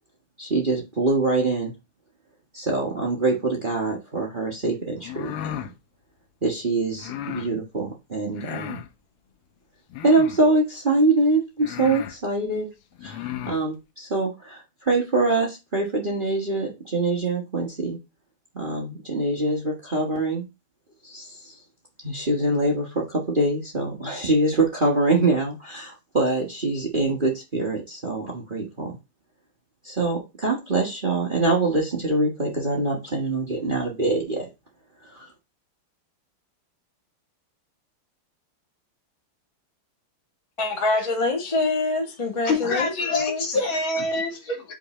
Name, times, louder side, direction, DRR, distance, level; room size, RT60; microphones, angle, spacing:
voice 1, 0.4-1.7 2.5-5.7 6.4-8.8 10.0-12.7 13.0-18.0 18.5-20.5 21.0-21.5 22.0-29.0 29.8-34.5 35.1-35.2, right 2 dB, 30° right, 1.2 m, -24 dB
sound 1, 5.0-5.7 7.0-7.5 8.3-8.9 9.9-10.5 11.2-11.3 11.6-12.2 13.0-13.6, left 11 dB, 85° left, 1.6 m, -34 dB
voice 2, 40.6-43.5, left 3 dB, 20° left, 1.0 m, -25 dB
voice 3, 42.4-44.7, left 2 dB, 65° left, 2.4 m, -26 dB
5.7 x 4.0 x 4.2 m
omnidirectional pair, 2.4 m